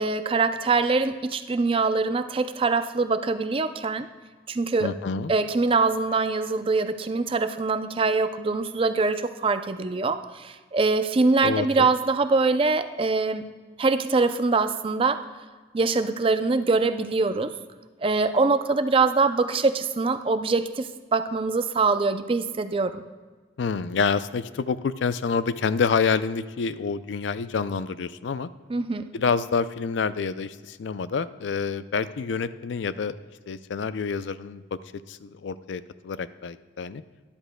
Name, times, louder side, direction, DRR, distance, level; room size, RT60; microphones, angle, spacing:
voice 1, 0.0-4.1 4.5-4.9 5.3-13.4 13.8-15.2 15.7-17.5 18.0-23.0 28.7-29.1, right 3 dB, 30° right, 10 dB, 0.4 m, -23 dB
voice 2, 4.8-5.3 11.4-11.9 23.6-28.5 29.1-33.1 33.5-34.8 35.1-37.0, left 5 dB, 85° left, 14 dB, 0.4 m, -27 dB
13.0 x 11.5 x 2.2 m, 1.4 s
head